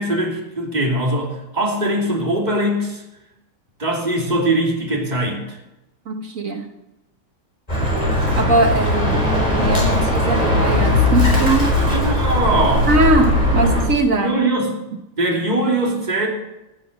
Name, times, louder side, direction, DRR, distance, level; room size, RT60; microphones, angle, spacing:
voice 1, 0.0-3.0 3.8-5.6 11.8-12.9 13.6-13.8 14.2-14.7 15.2-16.3, right 1 dB, 20° right, -2 dB, 2.8 m, -21 dB
voice 2, 6.1-6.7 8.4-11.7 12.9-14.4, right 2 dB, 45° right, 5 dB, 1.2 m, -20 dB
Bird, 7.7-13.9, left 1 dB, 15° left, 4.0 m, -18 dB
16.5 x 8.5 x 6.0 m, 0.93 s
omnidirectional pair, 2.4 m